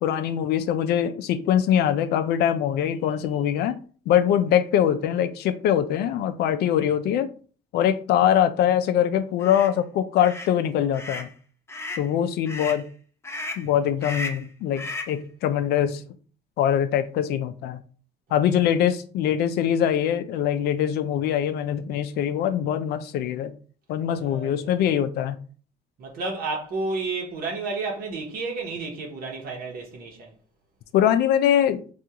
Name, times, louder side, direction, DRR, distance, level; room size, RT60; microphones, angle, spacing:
voice 1, 0.0-3.8 4.1-7.3 7.7-11.3 12.0-12.9 13.6-16.0 16.6-17.8 18.3-23.5 23.9-25.4 30.9-31.8, left 10 dB, 75° left, 0.4 m, -23 dB
sound 1, 9.4-9.7 10.2-10.5 10.9-11.3 11.7-12.1 12.5-12.8 13.2-13.7 14.0-14.5 14.8-15.2, left 2 dB, 15° left, 0.5 m, -34 dB
voice 2, 24.2-24.7 26.0-30.3, right 3 dB, 60° right, 0.9 m, -31 dB
3.5 x 2.4 x 2.8 m
cardioid pair, 110°, 17 cm